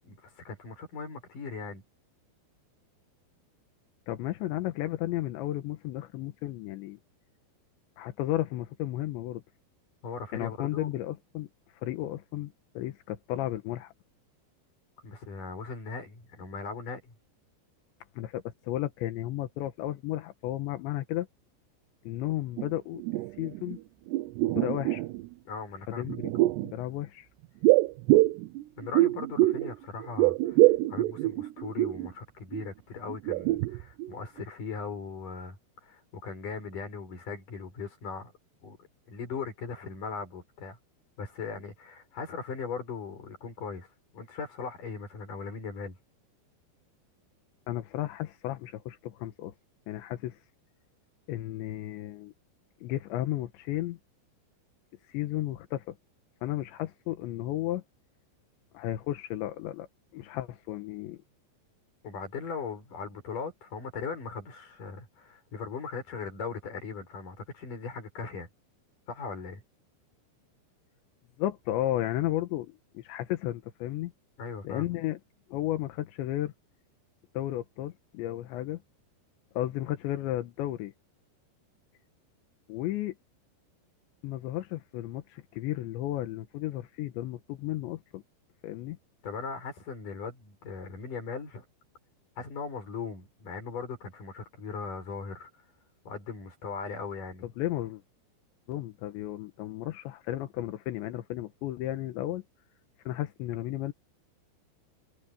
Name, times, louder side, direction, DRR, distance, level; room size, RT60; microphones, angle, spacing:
voice 1, 0.0-1.8 10.0-10.9 15.0-17.1 25.5-26.1 28.8-35.6 35.8-38.3 38.6-38.8 39.1-40.8 41.2-43.9 44.1-46.0 62.0-68.5 69.1-69.6 74.4-74.9 89.2-91.7 92.4-95.5 96.1-97.5, left 5 dB, 45° left, 7.7 m, -39 dB
voice 2, 4.1-7.0 8.0-9.4 10.3-11.5 11.7-13.9 18.2-21.3 22.1-23.0 23.4-23.8 24.6-25.0 25.9-27.3 47.7-49.6 49.9-50.4 51.3-52.3 52.8-54.0 55.1-56.0 56.4-57.8 58.7-59.9 60.1-61.2 71.4-74.1 74.6-75.2 75.5-76.5 77.4-78.8 79.6-80.9 82.7-83.2 84.2-88.2 88.6-89.0 97.4-98.0 98.7-102.4 103.1-103.9, left 14 dB, 85° left, 3.5 m, -33 dB
sound 1, 22.6-22.7 22.9-23.8 24.1-25.3 26.0-26.7 27.6-29.7 30.0-32.1 32.5-32.7 33.1-34.1 34.4-34.5, right 18 dB, 80° right, 2.7 m, -25 dB
omnidirectional pair, 5.1 m